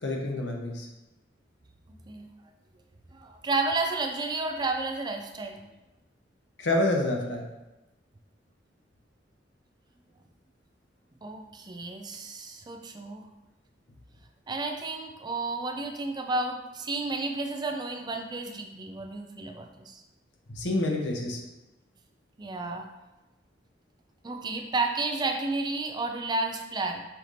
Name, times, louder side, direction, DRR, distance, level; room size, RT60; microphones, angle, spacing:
voice 1, 0.0-0.9 6.6-7.4 20.5-21.4, left 2 dB, 65° left, 0 dB, 0.9 m, -28 dB
voice 2, 3.1-5.6 11.2-13.2 14.5-20.0 22.4-22.9 24.2-27.0, right 3 dB, 25° right, 4 dB, 0.4 m, -31 dB
5.7 x 2.7 x 3.2 m, 1.0 s
head